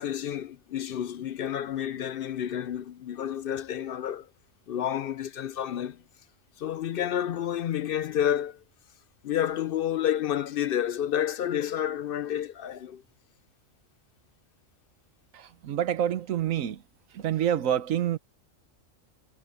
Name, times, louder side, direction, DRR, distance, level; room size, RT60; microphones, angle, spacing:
voice 1, 0.0-4.3 4.7-6.0 6.6-8.6 9.2-13.0, left 10 dB, 65° left, 0.6 m, -30 dB
voice 2, 15.3-16.8 17.1-18.2, right 10 dB, 85° right, 1.3 m, -27 dB
omnidirectional pair, 1.3 m